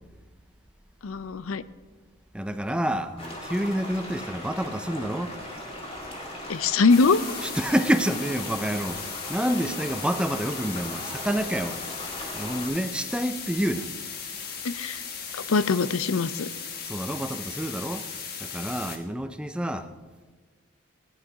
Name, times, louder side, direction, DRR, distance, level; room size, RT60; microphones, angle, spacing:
voice 1, 1.0-1.6 6.5-7.2 14.6-15.0 15.5-16.5, left 4 dB, 90° left, 15 dB, 0.5 m, -22 dB
voice 2, 2.3-5.3 7.4-9.0 9.3-11.8 12.3-13.9 16.9-18.0 18.4-19.9, right 1 dB, 5° right, 8 dB, 0.5 m, -28 dB
sound 1, 3.2-12.7, left 1 dB, 30° left, 2.0 m, -38 dB
sound 2, 6.9-19.0, left 6 dB, 50° left, 1.3 m, -37 dB
17.5 x 9.8 x 4.9 m, 1.4 s
head